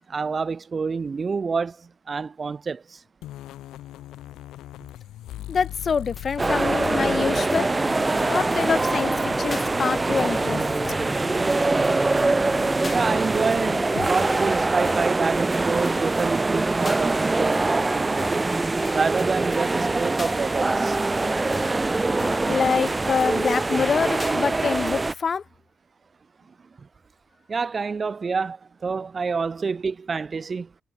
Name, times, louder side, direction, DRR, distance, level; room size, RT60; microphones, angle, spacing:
voice 1, 0.0-3.0 12.9-18.5 18.9-21.0 26.8-26.9 27.5-30.7, right 5 dB, 35° right, 1.5 m, -27 dB
sound 1, 3.2-14.1, left 14 dB, 85° left, 1.7 m, -40 dB
voice 2, 5.5-7.7 8.3-10.6 22.5-25.4, left 6 dB, 45° left, 1.0 m, -25 dB
sound 2, 6.2-6.3 6.8-7.2 7.5-7.8 8.2-8.3 8.5-8.6 8.8-8.9 9.5-9.7 10.2-10.3 10.8-11.2 11.5-11.6 11.8-11.9 12.2-12.3 12.8-13.0 13.5-13.6 14.2-14.5 14.8-15.2 15.5-15.6 15.9-16.0 16.2-16.3 16.9-17.0 17.5-17.6 18.2-18.5 18.9-19.0 19.2-19.3 19.5-19.6 20.2-20.4 20.9-21.0 21.5-21.9 22.2-22.5 22.9-23.0 23.2-23.3 23.5-23.6 24.2-24.4 24.9-25.0, left 3 dB, 25° left, 3.4 m, -38 dB
sound 3, 6.4-25.1, right 3 dB, 20° right, 0.8 m, -23 dB
cardioid pair, 90°, 0 cm